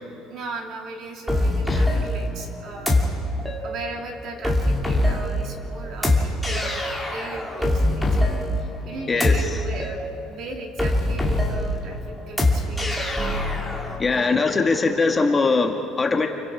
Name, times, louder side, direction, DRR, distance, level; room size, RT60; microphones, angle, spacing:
voice 1, 0.3-3.0 3.6-13.4 14.1-14.5, right 3 dB, 45° right, 2 dB, 2.8 m, -38 dB
sound 1, 1.3-14.0, left 1 dB, ahead, 2.5 m, -24 dB
voice 2, 9.1-9.6 14.0-16.3, left 3 dB, 20° left, 4 dB, 1.4 m, -21 dB
29.5 x 24.0 x 4.9 m, 2.4 s
cardioid pair, 160°, 0 cm